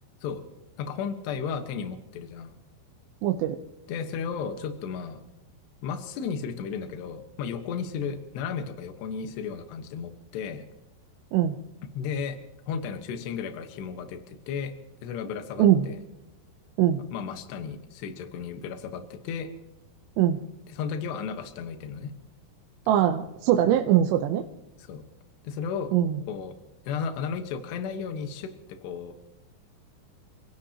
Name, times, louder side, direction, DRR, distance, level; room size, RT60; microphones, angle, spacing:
voice 1, 0.8-2.5 3.9-5.2 5.8-10.6 11.9-12.4 12.7-14.7 15.0-16.0 17.1-19.5 20.7-22.1 23.7-23.8 24.8-25.0 25.4-25.9 26.3-26.5 26.9-29.2, left 6 dB, 75° left, 7 dB, 3.3 m, -34 dB
voice 2, 3.2-3.6 11.3-11.5 15.6-15.9 16.8-17.0 20.2-20.4 22.9-24.4 25.9-26.2, right 11 dB, 80° right, 4 dB, 3.0 m, -22 dB
30.0 x 16.5 x 2.9 m, 1.0 s
omnidirectional pair, 5.1 m